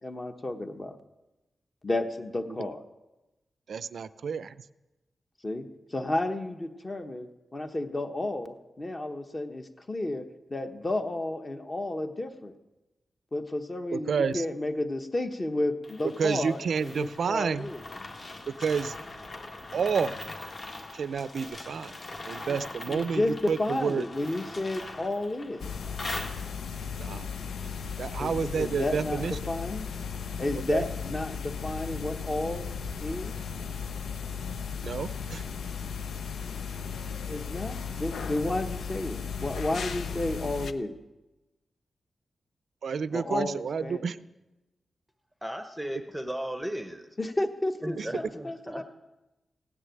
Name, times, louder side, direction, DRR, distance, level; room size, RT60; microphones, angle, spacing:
voice 1, 0.0-1.0 1.8-2.8 5.4-10.2 10.5-12.5 13.3-17.8 22.5-22.6 22.9-25.7 28.2-29.9 30.3-33.3 37.3-40.9 43.1-44.1 47.2-48.8, left 2 dB, 25° left, 7 dB, 1.0 m, -32 dB
voice 2, 3.7-4.6 13.9-14.4 16.2-17.7 18.6-18.9 19.7-20.1 20.9-22.0 22.3-24.0 27.0-27.3 28.0-29.4 30.7-30.9 34.8-35.4 42.8-44.2 48.0-48.1, right 6 dB, 65° right, 16 dB, 0.5 m, -29 dB
sound 1, 15.8-26.8, left 2 dB, 40° left, 1.8 m, -41 dB
sound 2, 25.6-40.7, left 6 dB, 80° left, 0.7 m, -36 dB
voice 3, 45.4-47.1 47.8-48.8, right 1 dB, ahead, 6 dB, 0.9 m, -35 dB
16.0 x 9.8 x 9.2 m, 1.0 s
wide cardioid pair, 170°, 0 cm